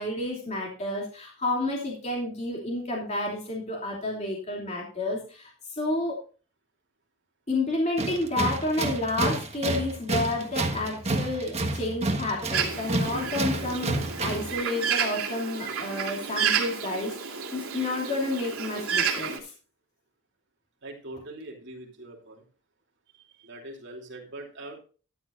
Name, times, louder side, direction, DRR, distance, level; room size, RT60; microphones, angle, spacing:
voice 1, 0.0-6.1 7.5-19.5, left 2 dB, 30° left, -2 dB, 2.8 m, -30 dB
Tools, 8.0-14.6, right 2 dB, 30° right, 1.4 m, -30 dB
Bird, 12.5-19.4, right 6 dB, 80° right, 2.7 m, -30 dB
voice 2, 20.8-22.4 23.1-24.8, right 2 dB, 55° right, 0 dB, 3.0 m, -42 dB
13.5 x 10.5 x 2.6 m, 0.36 s
head